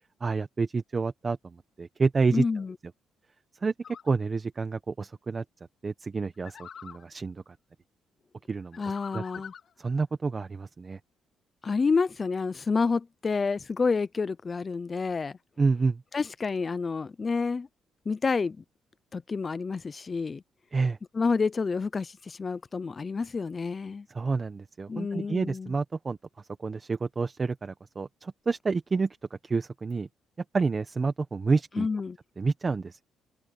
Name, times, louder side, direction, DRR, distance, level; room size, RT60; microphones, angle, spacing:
voice 1, 0.2-2.4 3.6-5.4 5.8-7.4 8.5-8.8 9.1-9.2 9.8-11.0 15.6-16.0 20.7-21.0 24.1-30.1 30.5-31.9 32.4-33.0, right 4 dB, 30° right, 1.2 m, -29 dB
voice 2, 2.3-2.7 8.8-9.5 11.6-15.4 16.1-17.7 18.1-18.6 19.1-20.4 21.1-24.1 24.9-25.7 31.8-32.2, left 4 dB, 35° left, 0.6 m, -29 dB
sound 1, 3.8-4.1 6.4-7.1 8.7-9.7, left 7 dB, 60° left, 3.7 m, -45 dB
cardioid pair, 90°, 0 cm